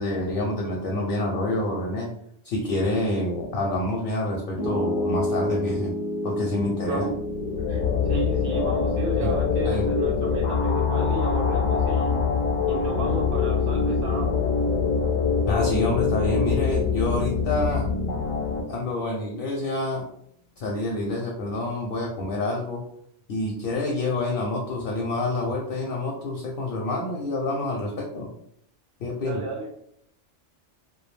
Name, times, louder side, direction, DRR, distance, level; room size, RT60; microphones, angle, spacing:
voice 1, 0.0-2.1 2.4-5.9 6.2-7.1 9.2-9.4 9.6-9.9 15.5-17.8 18.7-20.0 20.6-22.8 23.3-28.3 29.0-29.4, left 2 dB, 60° left, -1 dB, 0.6 m, -27 dB
Piano, 4.6-16.8, left 1 dB, 15° right, 0.7 m, -33 dB
sound 1, 7.1-18.6, left 5 dB, 80° left, 0.9 m, -24 dB
voice 2, 7.7-12.2 12.7-14.3 29.2-29.7, right 3 dB, 60° right, 0 dB, 0.6 m, -33 dB
2.3 x 2.1 x 3.1 m, 0.71 s
omnidirectional pair, 1.2 m